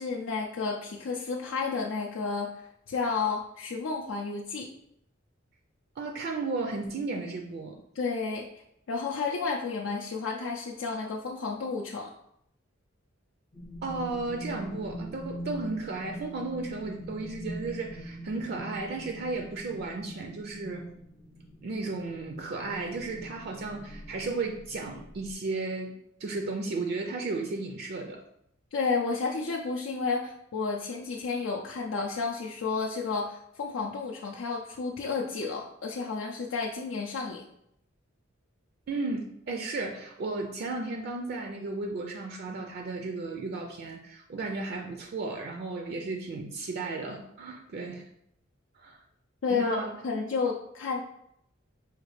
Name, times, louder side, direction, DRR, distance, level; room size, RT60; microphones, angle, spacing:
voice 1, 0.0-4.7 8.0-8.5 8.9-12.1 28.7-37.4 49.4-51.0, left 4 dB, 85° left, -2 dB, 0.4 m, -31 dB
voice 2, 6.0-7.8 13.8-20.9 21.6-25.9 26.2-28.2 38.9-48.1 48.8-49.0 49.5-50.0, right 3 dB, 50° right, 3 dB, 0.4 m, -34 dB
sound 1, 13.5-25.3, right 1 dB, 20° left, 0.4 m, -43 dB
5.0 x 2.4 x 3.1 m, 0.75 s
head